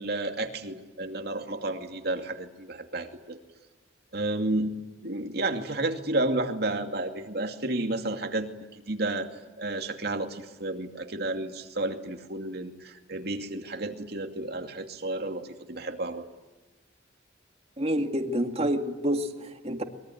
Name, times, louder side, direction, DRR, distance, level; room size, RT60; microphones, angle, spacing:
voice 1, 0.0-3.4 4.1-4.7 5.0-9.3 9.6-16.3, right 2 dB, 60° right, 5 dB, 2.5 m, -31 dB
voice 2, 17.8-19.8, equal, 35° right, 5 dB, 2.2 m, -28 dB
24.5 x 23.0 x 9.3 m, 1.2 s
head